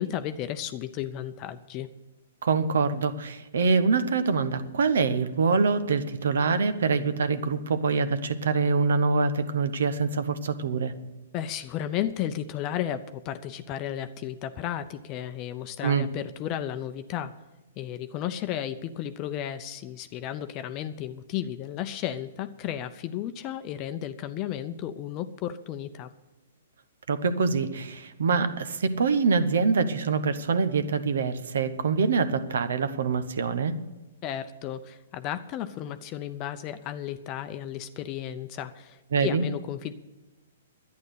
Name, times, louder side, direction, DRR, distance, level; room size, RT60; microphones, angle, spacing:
voice 1, 0.0-1.9 11.3-17.3 17.8-26.1 34.2-39.9, left 11 dB, 35° left, 10 dB, 0.6 m, -33 dB
voice 2, 2.4-10.9 15.8-16.1 27.1-33.8 39.1-39.4, right 4 dB, 70° right, 12 dB, 1.0 m, -25 dB
11.5 x 9.5 x 8.1 m, 1.1 s
hypercardioid pair, 125°, 0 cm